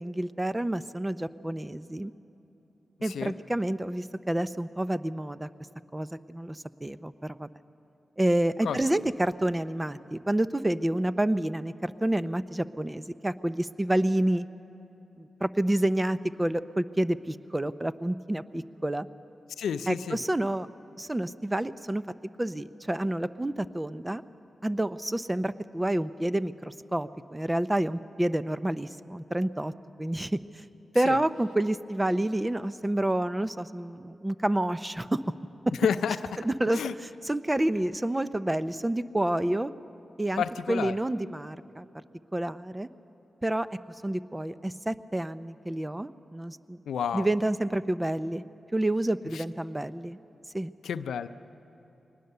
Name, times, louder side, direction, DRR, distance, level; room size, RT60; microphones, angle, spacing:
voice 1, 0.0-2.1 3.0-5.5 5.9-7.5 8.2-14.5 15.2-19.1 19.9-20.7 21.0-22.0 22.4-24.2 24.6-29.7 30.0-30.6 30.9-35.2 35.7-35.8 36.4-39.7 40.2-41.8 42.3-42.9 43.4-43.7 44.0-46.8 47.1-48.4 48.7-50.2 50.5-50.7, right 1 dB, 20° right, 13 dB, 0.7 m, -29 dB
voice 2, 19.6-20.2 31.1-31.2 35.8-36.2 36.7-36.9 40.4-41.0 46.9-47.3 50.8-51.3, left 7 dB, 90° left, 12 dB, 0.5 m, -29 dB
23.5 x 19.5 x 6.8 m, 3.0 s
supercardioid pair, 40°, 0 cm